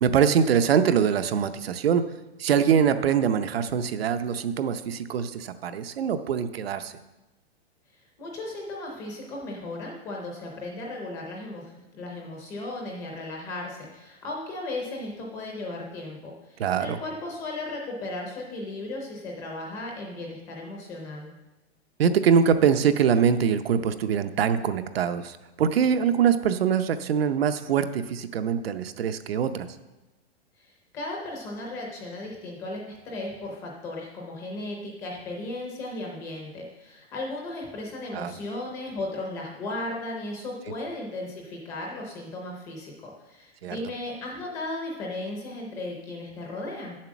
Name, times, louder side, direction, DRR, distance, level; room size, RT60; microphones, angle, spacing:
voice 1, 0.0-2.1 2.4-6.9 16.6-17.0 22.0-29.7 38.1-38.3 43.6-43.8, right 7 dB, 65° right, 10 dB, 0.8 m, -23 dB
voice 2, 8.2-21.3 30.6-47.0, left 2 dB, 10° left, -1 dB, 0.6 m, -36 dB
9.0 x 7.4 x 6.1 m, 1.1 s
hypercardioid pair, 180°, 32 cm